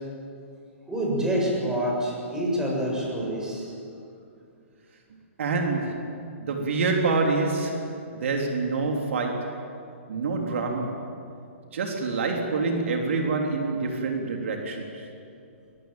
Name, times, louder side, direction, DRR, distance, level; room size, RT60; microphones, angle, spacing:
voice 1, 0.8-3.7, right 1 dB, 10° right, -2 dB, 7.3 m, -27 dB
voice 2, 5.4-6.1 6.4-9.7 10.1-11.1 11.7-15.1, right 3 dB, 70° right, 2 dB, 3.5 m, -27 dB
23.0 x 21.0 x 9.1 m, 2.5 s
hypercardioid pair, 145°, 7 cm